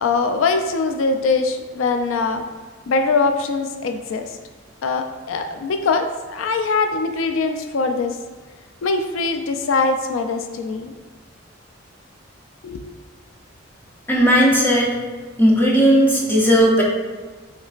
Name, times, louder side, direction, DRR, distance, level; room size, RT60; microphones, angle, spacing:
voice 1, 0.0-2.5 2.9-4.3 4.8-8.2 8.8-10.9 12.6-12.9, left 4 dB, 90° left, 6 dB, 0.4 m, -22 dB
voice 2, 14.1-15.0 15.4-16.8, equal, 10° left, -4 dB, 0.8 m, -15 dB
5.9 x 3.2 x 2.4 m, 1.4 s
head